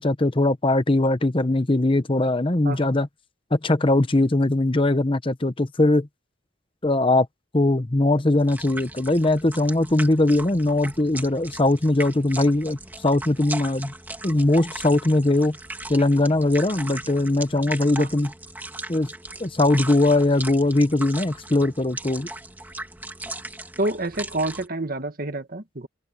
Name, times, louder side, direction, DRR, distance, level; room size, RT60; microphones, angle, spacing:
voice 1, 0.0-3.1 3.5-6.1 6.8-7.3 7.5-12.8 13.0-13.9 14.2-15.6 15.9-18.3 18.9-19.1 19.4-22.3, left 2 dB, 25° left, 0.9 m, -20 dB
sound 1, 8.4-24.7, right 2 dB, 10° right, 2.2 m, -38 dB
voice 2, 23.8-25.9, right 2 dB, 45° right, 1.7 m, -28 dB
open air
head